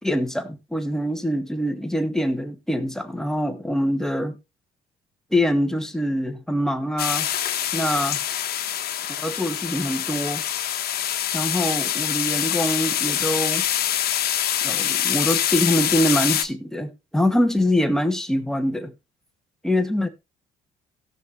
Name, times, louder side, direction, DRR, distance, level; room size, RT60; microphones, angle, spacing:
voice 1, 0.0-4.4 5.3-7.3 7.7-8.2 9.2-10.4 11.3-13.7 14.6-18.9 19.6-20.1, equal, 5° left, 1.9 m, -24 dB
sound 1, 7.0-16.5, left 11 dB, 65° left, 1.3 m, -25 dB
17.0 x 6.0 x 3.2 m
cardioid pair, 85°, 17 cm